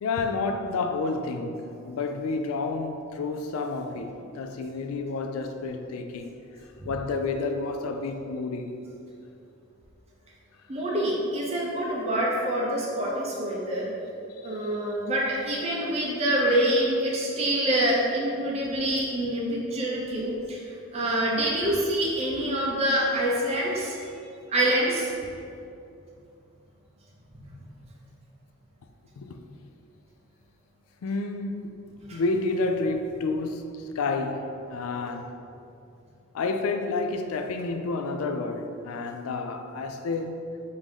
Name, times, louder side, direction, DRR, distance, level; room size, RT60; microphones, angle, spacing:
voice 1, 0.0-8.8 14.4-14.9 29.2-29.4 31.0-31.8 32.1-35.4 36.3-40.7, left 3 dB, 80° left, 0.3 m, -30 dB
voice 2, 10.7-13.9 14.4-20.6 20.9-24.0 24.5-25.1 32.1-32.2, right 1 dB, 30° right, 0.6 m, -26 dB
3.6 x 2.7 x 4.7 m
head